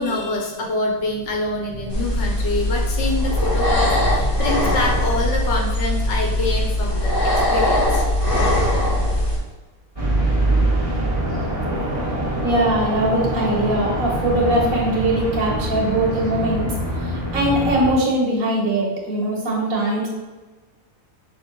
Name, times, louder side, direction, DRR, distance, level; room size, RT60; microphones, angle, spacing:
voice 1, 0.0-8.0, left 2 dB, 60° left, 0 dB, 1.0 m, -25 dB
sound 1, 1.9-9.4, left 1 dB, 25° left, 0.7 m, -20 dB
sound 2, 10.0-17.9, right 1 dB, 25° right, 1.0 m, -24 dB
voice 2, 12.4-16.7 17.0-20.1, right 1 dB, 75° right, -3 dB, 1.5 m, -21 dB
6.0 x 3.0 x 2.2 m, 1.3 s
omnidirectional pair, 1.4 m